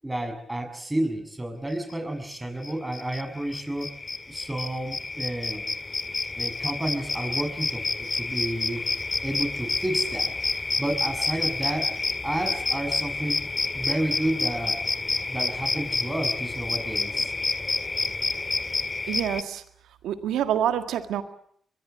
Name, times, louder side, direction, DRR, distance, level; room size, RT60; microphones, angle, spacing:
voice 1, 0.0-3.9 4.3-5.6 6.4-8.8 9.2-10.3 10.8-12.0 12.2-13.4 13.7-14.8 15.3-17.3, right 1 dB, 15° right, 6 dB, 7.1 m, -31 dB
sound 1, 2.3-2.4 2.6-19.4, left 3 dB, 35° left, 1.9 m, -29 dB
voice 2, 19.1-19.6 20.0-21.2, right 10 dB, 85° right, 9 dB, 1.8 m, -26 dB
23.0 x 22.0 x 8.9 m, 0.65 s
supercardioid pair, 40°, 0 cm